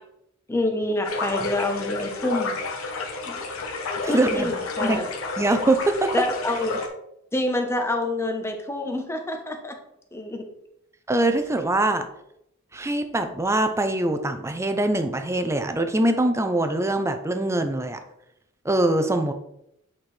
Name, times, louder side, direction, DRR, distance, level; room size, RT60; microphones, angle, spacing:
voice 1, 0.5-2.5 3.3-3.4 4.1-5.1 6.1-6.8 7.3-9.8 10.1-10.5, left 1 dB, 10° left, 4 dB, 0.8 m, -27 dB
sound 1, 1.0-6.9, left 3 dB, 70° left, 1.0 m, -30 dB
voice 2, 4.0-5.0 5.4-6.1 11.1-12.1 12.7-18.0 18.6-19.3, right 1 dB, 15° right, 7 dB, 0.5 m, -23 dB
8.2 x 4.4 x 3.2 m, 0.79 s
head